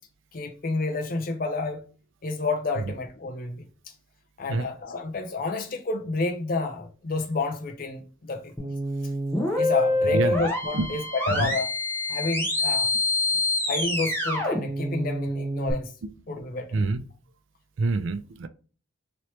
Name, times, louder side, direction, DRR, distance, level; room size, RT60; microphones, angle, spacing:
voice 1, 0.3-1.8 2.2-3.7 4.4-8.5 9.6-11.7 12.1-12.9 13.7-15.9 16.3-16.8, left 3 dB, 45° left, 0.5 m, -30 dB
sound 1, 8.6-15.7, left 2 dB, 10° left, 0.9 m, -26 dB
voice 2, 10.0-10.4 10.7-10.9 11.3-11.5 12.9-13.0 13.3-13.4 16.0-16.1 16.7-17.0 17.8-18.5, right 3 dB, 70° right, 0.4 m, -27 dB
3.0 x 3.0 x 3.1 m
head